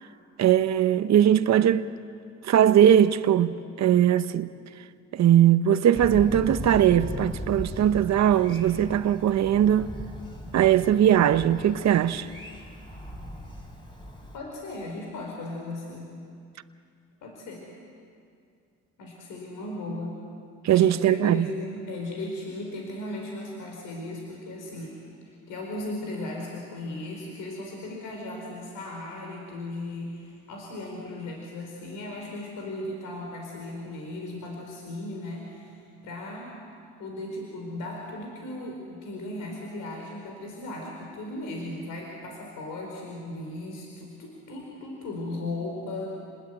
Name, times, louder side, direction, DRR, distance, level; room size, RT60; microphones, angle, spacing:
voice 1, 0.4-1.9 2.4-4.5 5.1-9.9 10.5-12.3 20.6-21.5, right 10 dB, 60° right, 1.0 m, -20 dB
Thunder, 5.9-14.4, left 1 dB, 15° left, 5.6 m, -38 dB
voice 2, 14.3-16.1 17.2-17.7 19.0-20.1 20.7-25.0 25.2-36.5 37.0-46.1, left 2 dB, 90° left, 4.9 m, -37 dB
30.0 x 21.0 x 9.2 m
cardioid pair, 90°, 30 cm